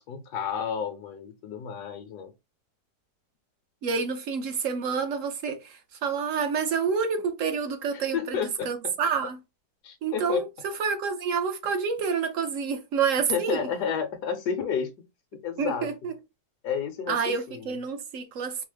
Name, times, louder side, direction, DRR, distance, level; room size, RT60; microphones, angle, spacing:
voice 1, 0.0-2.3 7.9-8.9 9.8-10.4 13.3-14.9 15.3-15.9 16.6-17.8, left 7 dB, 75° left, 1.2 m, -31 dB
voice 2, 3.8-9.4 10.0-13.6 15.6-16.1 17.1-18.6, right 6 dB, 60° right, 0.9 m, -28 dB
4.5 x 2.0 x 3.2 m
omnidirectional pair, 1.8 m